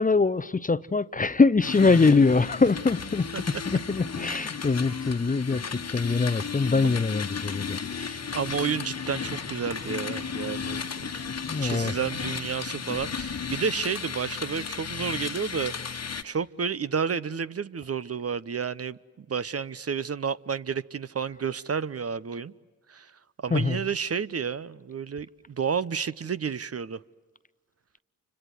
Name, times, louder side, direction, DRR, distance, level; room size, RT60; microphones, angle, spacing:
voice 1, 0.0-8.2 11.4-11.9 23.5-23.9, left 4 dB, 20° left, 0.7 m, -23 dB
sound 1, 1.6-16.2, left 6 dB, 45° left, 1.4 m, -34 dB
voice 2, 8.3-11.1 11.6-16.0 16.2-22.5 22.9-23.1 23.4-27.0, right 6 dB, 40° right, 0.8 m, -31 dB
29.0 x 26.0 x 7.9 m
supercardioid pair, 40°, 36 cm